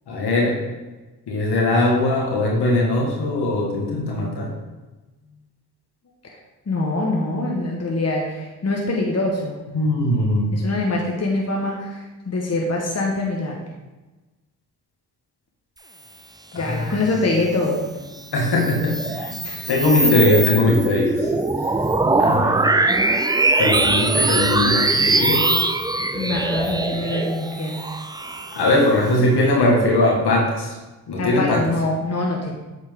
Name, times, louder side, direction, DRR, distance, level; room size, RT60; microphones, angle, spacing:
voice 1, 0.1-0.6 1.3-4.5 9.7-10.6 16.5-17.0 18.3-19.4 19.7-21.3 22.2-22.6 23.6-25.7 28.5-30.8 31.1-31.6, left 2 dB, 70° left, -2 dB, 1.9 m, -20 dB
voice 2, 6.7-9.6 10.5-13.6 16.5-17.8 19.4-19.7 20.0-20.3 26.1-27.9 31.2-32.5, left 2 dB, 40° left, -1 dB, 1.4 m, -24 dB
sound 1, 18.2-29.1, right 2 dB, 10° right, 0.4 m, -21 dB
8.1 x 4.4 x 3.7 m, 1.1 s
supercardioid pair, 50°, 41 cm